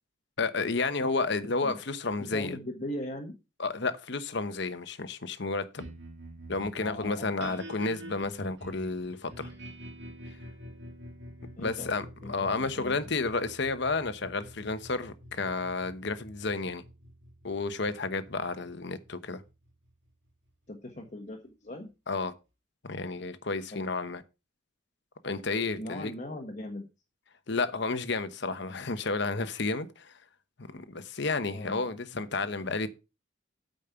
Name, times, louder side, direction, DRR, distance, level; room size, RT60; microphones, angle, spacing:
voice 1, 0.4-2.6 3.6-5.8 6.5-9.5 11.6-16.8 17.4-19.4 22.1-22.3 22.8-24.2 25.2-26.1 27.5-30.1 30.6-32.9, left 3 dB, 55° left, 1.0 m, -31 dB
voice 2, 2.2-3.4 6.8-7.6 11.6-13.0 20.7-21.9 23.7-23.8 25.8-26.9 31.5-31.9, left 1 dB, 35° left, 1.3 m, -40 dB
sound 1, 5.8-20.5, equal, 60° right, 3.1 m, -47 dB
8.7 x 5.3 x 6.9 m
head